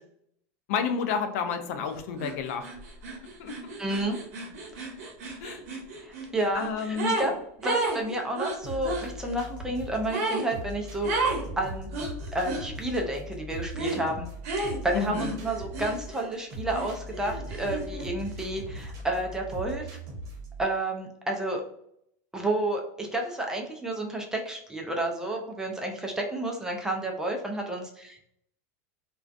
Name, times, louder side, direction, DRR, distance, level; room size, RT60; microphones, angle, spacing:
voice 1, 0.7-2.7 3.4-3.6 5.4-5.6 6.5-7.2 14.9-15.4, left 6 dB, 75° left, 7 dB, 0.4 m, -30 dB
sound 1, 2.2-2.3 2.6-7.3 7.6-9.1 10.1-10.5 11.0-11.4 11.9-12.7 13.7-14.0 14.4-16.3 16.7-18.1, right 2 dB, 80° right, 0.7 m, -32 dB
voice 2, 3.8-4.2 4.8-4.9 6.0-7.3 7.6-11.9 12.3-14.3 14.6-20.0 20.6-21.6 22.3-28.3, right 1 dB, 5° right, 1 dB, 0.4 m, -31 dB
sound 2, 8.6-20.6, equal, 45° right, 0.8 m, -40 dB
2.4 x 2.2 x 2.4 m, 0.72 s
supercardioid pair, 145°, 8 cm